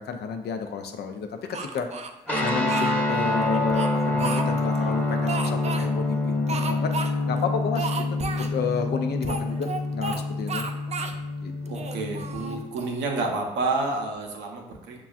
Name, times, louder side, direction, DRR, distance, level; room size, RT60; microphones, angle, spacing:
voice 1, 0.0-1.9 2.4-8.0 8.4-10.7 11.4-11.5, left 5 dB, 65° left, 5 dB, 0.5 m, -31 dB
Speech, 1.5-2.9 3.5-4.8 5.3-5.9 6.5-7.1 7.4-7.5 7.7-8.5 9.2-10.2 10.5-11.2 11.7-13.0, right 4 dB, 40° right, 0.4 m, -32 dB
sound 1, 2.3-12.6, left 2 dB, 10° left, 0.9 m, -27 dB
voice 2, 11.7-15.0, right 3 dB, 75° right, 1 dB, 0.7 m, -29 dB
6.0 x 2.3 x 2.4 m, 0.93 s
hypercardioid pair, 40°, 18 cm